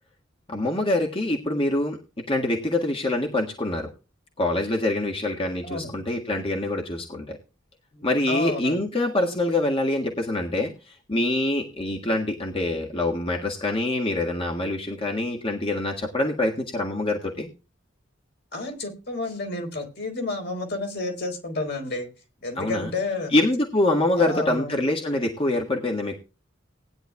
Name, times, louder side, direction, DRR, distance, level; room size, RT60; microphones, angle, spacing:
voice 1, 0.5-2.0 2.3-3.9 4.4-7.4 8.0-17.5 22.6-22.9 23.3-26.2, left 2 dB, 30° left, 1 dB, 1.7 m, -25 dB
voice 2, 5.6-6.0 7.9-8.8 18.5-22.1 22.4-23.3 24.2-24.9, left 2 dB, 55° left, 3 dB, 4.0 m, -31 dB
19.5 x 10.0 x 2.3 m, 0.32 s
head